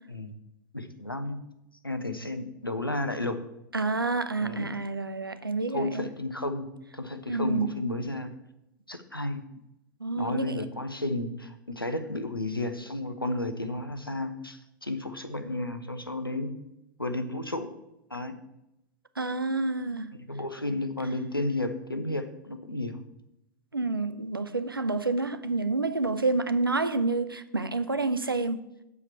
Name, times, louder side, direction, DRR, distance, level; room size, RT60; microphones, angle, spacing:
voice 1, 0.7-1.4 1.8-3.4 4.4-4.7 5.7-6.7 6.9-8.3 8.9-9.4 10.2-16.5 17.0-17.7 18.1-18.3 20.3-23.0, left 2 dB, 90° left, 0.8 m, -32 dB
voice 2, 3.7-6.1 7.3-7.7 10.0-10.7 19.2-20.1 23.7-28.6, right 3 dB, 85° right, 0.6 m, -28 dB
7.2 x 4.9 x 7.0 m
figure-of-eight pair, 95°, 11 cm